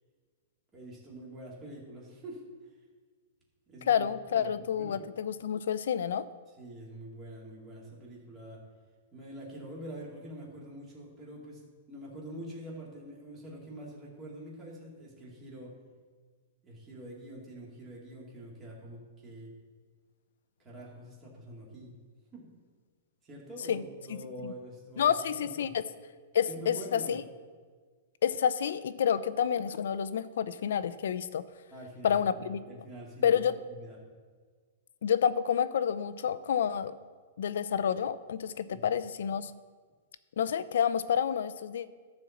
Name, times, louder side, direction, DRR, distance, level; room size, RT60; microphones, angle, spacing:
voice 1, 0.7-2.4 3.7-5.0 6.6-8.6 9.1-11.6 11.9-15.7 16.6-19.5 20.6-22.0 22.3-22.4 23.2-25.7 26.5-27.2 31.7-33.4 33.8-34.0 38.7-38.9, right 1 dB, 15° right, -3 dB, 2.3 m, -45 dB
voice 2, 3.9-6.3 23.7-23.8 24.1-24.2 24.4-24.5 25.0-25.8 26.3-27.2 28.2-31.4 32.0-32.6 33.2-33.6 35.0-36.9 37.4-39.5 40.4-41.9, left 8 dB, 75° left, 15 dB, 0.5 m, -29 dB
13.0 x 4.5 x 7.1 m, 1.5 s
hypercardioid pair, 160°, 0 cm